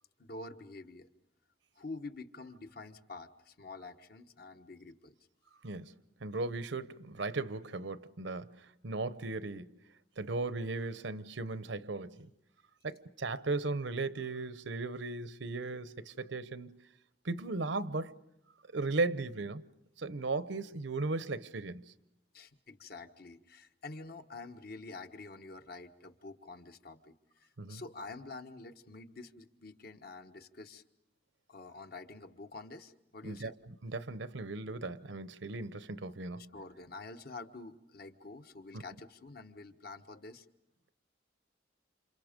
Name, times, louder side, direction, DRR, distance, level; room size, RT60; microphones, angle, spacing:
voice 1, 0.2-1.1 1.7-5.2 22.3-30.8 31.5-33.5 36.4-40.5, left 3 dB, 55° left, 1.3 m, -48 dB
voice 2, 6.2-9.7 10.2-12.3 12.8-16.8 17.2-18.1 18.7-19.6 20.0-21.8 27.6-27.8 33.2-33.5 33.8-36.5, right 3 dB, 85° right, 0.9 m, -37 dB
29.0 x 28.0 x 5.2 m
head